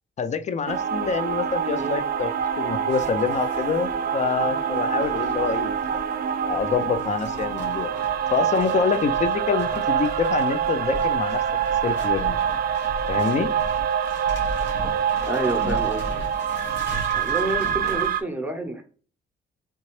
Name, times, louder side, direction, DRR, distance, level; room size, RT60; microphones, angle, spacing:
voice 1, 0.2-2.3 2.6-5.8 6.5-7.9 8.3-11.4 11.8-12.4 13.1-13.5, left 6 dB, 35° left, 11 dB, 0.4 m, -26 dB
sound 1, 0.7-18.2, right 8 dB, 50° right, 0.4 m, -25 dB
sound 2, 2.9-18.1, equal, 65° left, 1.2 m, -38 dB
voice 2, 15.3-16.0 17.1-18.8, right 1 dB, 10° right, 5 dB, 0.9 m, -29 dB
3.4 x 2.7 x 3.1 m, 0.39 s
cardioid pair, 90°, 20 cm